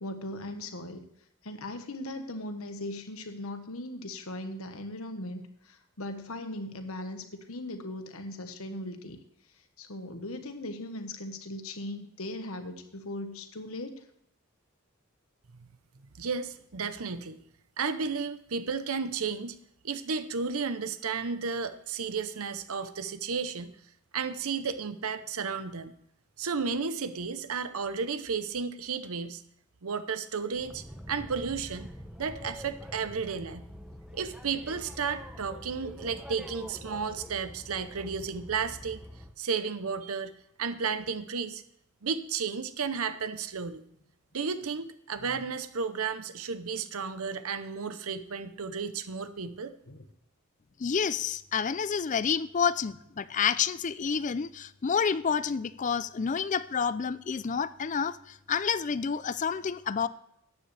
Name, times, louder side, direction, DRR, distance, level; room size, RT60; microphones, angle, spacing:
voice 1, 0.0-1.1 1.4-9.2 9.8-14.0 45.3-45.4 49.9-50.0, left 1 dB, 70° left, 7 dB, 1.4 m, -39 dB
voice 2, 16.2-17.4 17.8-19.6 19.8-23.7 24.1-25.9 26.4-29.4 29.8-31.9 32.2-33.6 34.1-39.0 39.4-40.3 40.6-41.6 42.0-43.8 44.3-49.7, right 5 dB, 75° right, 11 dB, 0.8 m, -33 dB
Boat Water vehicle, 30.5-39.3, equal, 5° right, 0.8 m, -45 dB
voice 3, 50.8-60.1, left 6 dB, 35° left, 16 dB, 0.4 m, -29 dB
13.5 x 9.6 x 3.3 m, 0.74 s
head